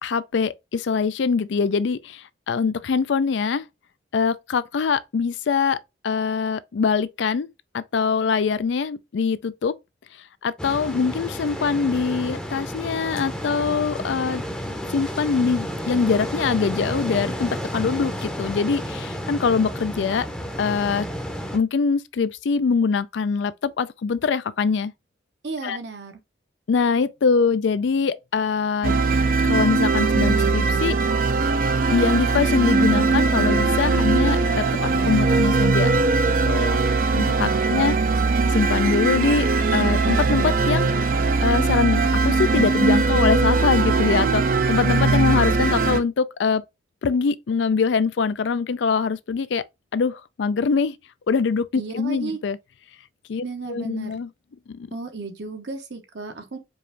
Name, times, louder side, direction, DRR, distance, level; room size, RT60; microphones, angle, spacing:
voice 1, 0.0-3.7 4.1-5.8 6.0-7.5 7.7-9.7 10.4-14.4 14.9-20.3 20.6-21.1 21.5-24.9 25.6-25.8 26.7-29.0 29.4-31.0 31.9-36.0 36.3-37.9 38.5-40.9 41.4-46.6 47.0-49.6 49.9-51.0 51.3-51.7 51.9-52.6 53.3-53.4 53.7-54.3 54.7-54.9, left 5 dB, 70° left, 0.4 m, -23 dB
sound 1, 10.6-21.6, equal, 5° left, 0.7 m, -31 dB
voice 2, 25.4-26.2 37.5-38.1 38.4-38.5 51.7-52.4 53.4-54.2 54.9-56.6, right 3 dB, 65° right, 0.9 m, -34 dB
sound 2, 28.8-46.0, right 3 dB, 50° right, 0.4 m, -20 dB
4.7 x 2.6 x 3.2 m
head